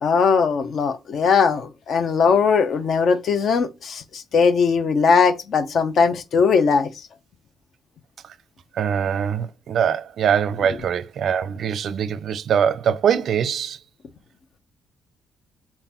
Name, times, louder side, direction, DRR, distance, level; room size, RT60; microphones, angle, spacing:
voice 1, 0.0-6.9, left 5 dB, 55° left, 0.6 m, -19 dB
voice 2, 8.7-13.8, right 8 dB, 60° right, 0.4 m, -23 dB
4.2 x 3.8 x 2.9 m
cardioid pair, 150°, 0 cm